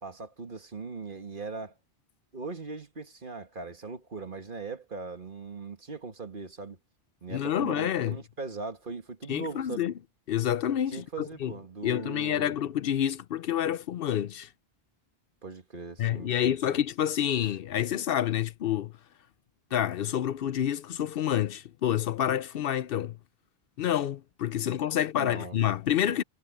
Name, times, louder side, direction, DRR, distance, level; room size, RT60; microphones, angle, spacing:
voice 1, 0.0-1.7 2.3-6.8 7.2-9.9 10.9-12.5 15.4-16.8 25.2-25.6, right 4 dB, 55° right, 2.0 m, -40 dB
voice 2, 7.3-8.2 9.3-9.9 10.3-11.5 11.8-14.5 16.0-18.9 19.7-23.2 23.8-26.2, left 10 dB, 65° left, 0.8 m, -28 dB
omnidirectional pair, 1.0 m